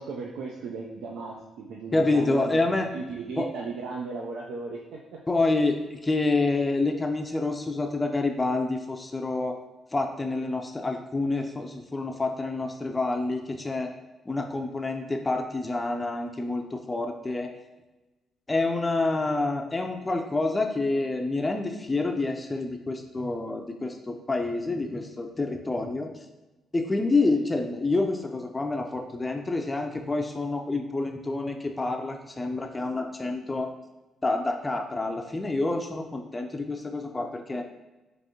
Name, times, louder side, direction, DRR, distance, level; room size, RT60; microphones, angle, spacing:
voice 1, 0.0-4.8, right 4 dB, 80° right, 0 dB, 0.4 m, -36 dB
voice 2, 1.9-2.9 3.4-3.5 5.3-9.6 9.9-13.9 14.3-17.5 18.5-26.1 26.7-33.7 34.2-37.6, left 2 dB, 20° left, 4 dB, 0.4 m, -28 dB
4.8 x 2.6 x 2.8 m, 1.1 s
cardioid pair, 90°, 0 cm